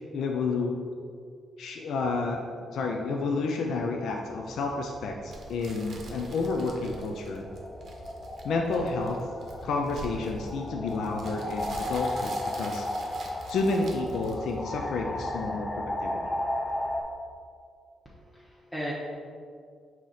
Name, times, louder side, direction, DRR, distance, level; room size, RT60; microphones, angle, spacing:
voice 1, 0.1-0.8 1.6-2.4 2.7-7.5 8.4-9.2 9.6-12.9 13.5-16.1, left 3 dB, 80° left, 2 dB, 0.3 m, -30 dB
sound 1, 4.2-17.0, left 1 dB, 30° left, 0.6 m, -36 dB
sound 2, 5.3-14.8, right 3 dB, 60° right, 0.7 m, -46 dB
voice 2, 18.0-18.9, equal, ahead, -8 dB, 0.8 m, -37 dB
4.7 x 2.8 x 4.0 m, 2.2 s
cardioid pair, 70°, 0 cm